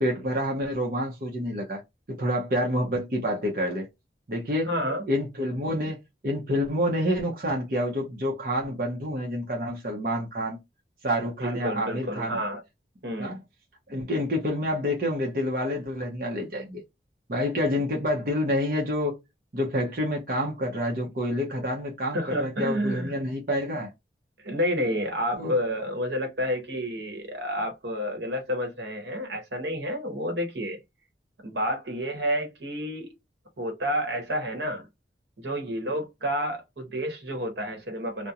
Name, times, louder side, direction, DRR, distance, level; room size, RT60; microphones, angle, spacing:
voice 1, 0.0-1.8 2.1-3.9 4.3-4.7 5.1-6.0 6.2-10.6 11.0-12.4 13.2-13.4 13.9-16.8 17.3-19.2 19.5-23.9 25.4-25.5, equal, 50° right, 0.7 m, -28 dB
voice 2, 4.6-5.1 11.4-12.6 13.0-13.4 22.1-23.1 24.4-30.8 31.4-33.1 33.6-34.9 35.4-38.3, equal, 80° right, 1.0 m, -30 dB
2.8 x 2.1 x 2.3 m
head